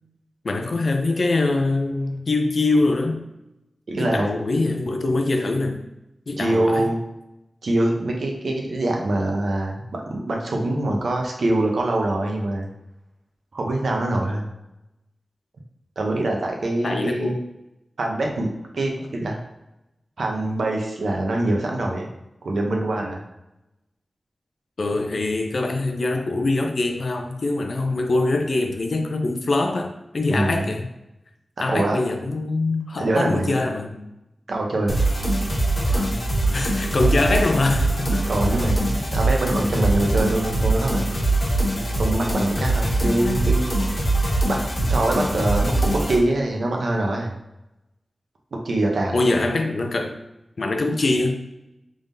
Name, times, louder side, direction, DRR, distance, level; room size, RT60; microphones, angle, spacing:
voice 1, 0.4-3.2 4.0-5.8 6.3-6.9 16.8-17.4 24.8-30.9 31.6-34.0 36.5-38.2 43.2-43.4 49.1-50.2 50.6-51.4, left 2 dB, 65° left, 4 dB, 0.5 m, -23 dB
voice 2, 3.9-4.3 6.4-7.0 7.6-12.7 13.5-14.4 16.0-17.3 18.0-19.4 20.2-22.1 22.4-23.2 30.3-30.7 31.7-32.0 33.0-33.5 34.5-35.0 35.9-36.0 38.3-41.0 42.0-43.6 44.5-47.3 48.6-49.2, right 1 dB, 80° right, 0 dB, 0.7 m, -24 dB
sound 1, 34.9-46.2, right 1 dB, 45° left, 0.9 m, -22 dB
3.5 x 3.4 x 2.7 m, 0.92 s
wide cardioid pair, 95°, 0 cm